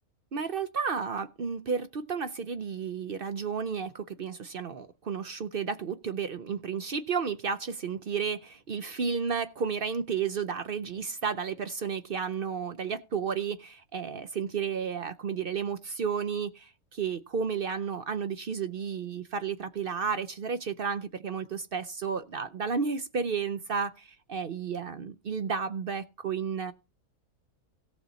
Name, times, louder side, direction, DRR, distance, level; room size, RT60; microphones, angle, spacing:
voice 1, 0.3-26.7, right 6 dB, 55° right, 0.6 m, -32 dB
17.5 x 6.2 x 4.1 m
omnidirectional pair, 1.6 m